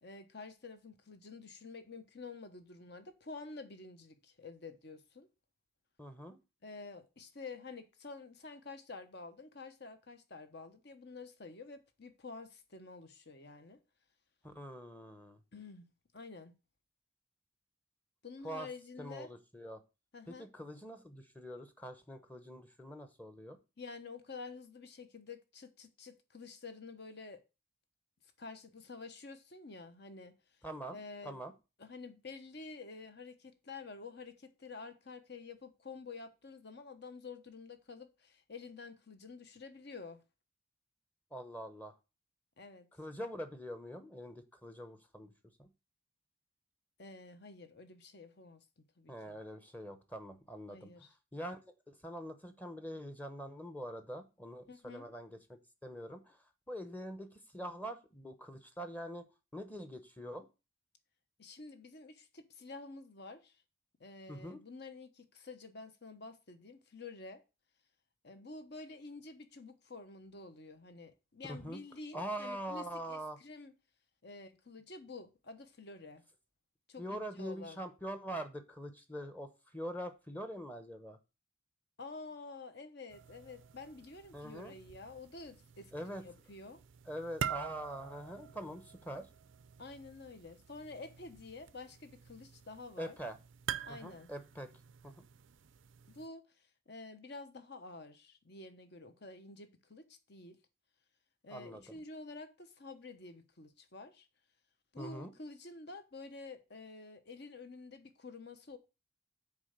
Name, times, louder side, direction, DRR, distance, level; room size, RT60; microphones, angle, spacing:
voice 1, 0.0-5.3 6.6-13.8 15.5-15.9 16.1-16.5 18.2-19.3 20.1-20.5 23.8-27.4 28.4-30.3 30.9-31.4 31.8-40.2 42.6-42.9 47.0-48.6 49.0-49.4 50.7-51.1 54.7-55.0 61.4-63.6 64.0-67.4 68.2-73.7 74.2-76.2 76.9-77.8 82.0-86.8 89.8-93.2 93.8-94.3 96.1-96.4 96.9-100.6 101.4-104.3 104.9-108.8, left 3 dB, 55° left, 1.1 m, -49 dB
voice 2, 6.0-6.4 14.4-15.4 18.4-18.7 19.0-19.8 20.3-23.6 30.6-31.0 31.2-31.5 41.3-41.9 43.0-45.3 45.6-45.7 49.1-51.1 51.3-51.6 51.9-55.3 55.8-56.4 56.7-57.3 57.5-59.3 59.5-60.5 64.3-64.6 71.5-71.8 72.1-73.4 77.0-81.2 84.3-84.7 85.9-86.2 87.1-89.3 93.0-93.3 93.9-94.7 95.0-95.3 101.5-102.0 105.0-105.3, equal, 10° left, 0.8 m, -44 dB
sound 1, 83.1-96.3, right 8 dB, 65° right, 0.5 m, -47 dB
7.2 x 4.6 x 6.6 m
head